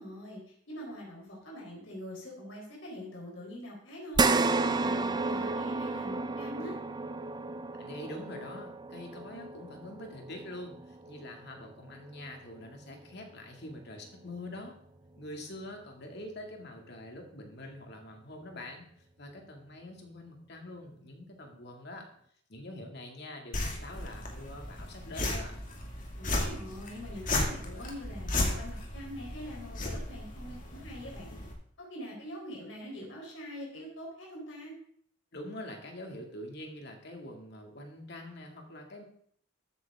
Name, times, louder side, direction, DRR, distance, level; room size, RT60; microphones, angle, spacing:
voice 1, 0.0-4.3 4.6-6.8 26.1-31.3 31.8-34.7, equal, 85° left, -2 dB, 4.1 m, -44 dB
sound 1, 4.1-12.8 13.2-13.3 14.8-14.9, right 3 dB, 20° right, 0.5 m, -32 dB
voice 2, 7.8-14.8 15.2-18.8 19.2-22.1 22.5-25.5 35.3-39.0, left 1 dB, 60° left, 2 dB, 2.4 m, -45 dB
sound 2, 23.5-31.5, left 2 dB, 45° left, 2.3 m, -35 dB
13.5 x 9.3 x 3.7 m, 0.64 s
head